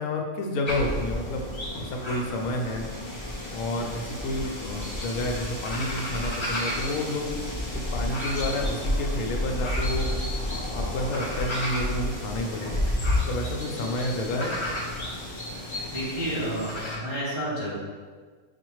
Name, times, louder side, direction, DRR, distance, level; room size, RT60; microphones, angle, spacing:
voice 1, 0.0-1.4 1.8-2.9 3.5-7.3 7.7-10.1 10.7-12.8 13.2-14.5, left 1 dB, 80° left, 2 dB, 1.1 m, -30 dB
sound 1, 0.6-17.0, left 1 dB, 40° left, 0.4 m, -31 dB
voice 2, 15.9-17.7, right 1 dB, 25° right, -9 dB, 0.9 m, -30 dB
5.0 x 2.4 x 3.1 m, 1.5 s
omnidirectional pair, 1.5 m